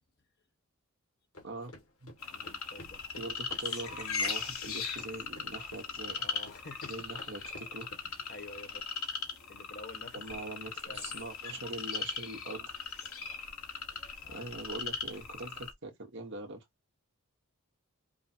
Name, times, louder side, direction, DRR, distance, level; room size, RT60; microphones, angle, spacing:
sound 1, 1.3-8.0, left 2 dB, 85° left, 2.1 m, -52 dB
sound 2, 2.2-15.7, left 5 dB, 65° left, 1.2 m, -39 dB
voice 1, 2.3-3.1 6.2-6.9 8.0-8.8 9.5-10.4 10.8-11.2 13.9-14.5, left 2 dB, 45° left, 1.2 m, -50 dB
voice 2, 3.2-6.2 6.9-7.9 10.1-12.7 14.3-16.6, right 2 dB, 55° right, 1.3 m, -43 dB
5.4 x 2.2 x 4.4 m
head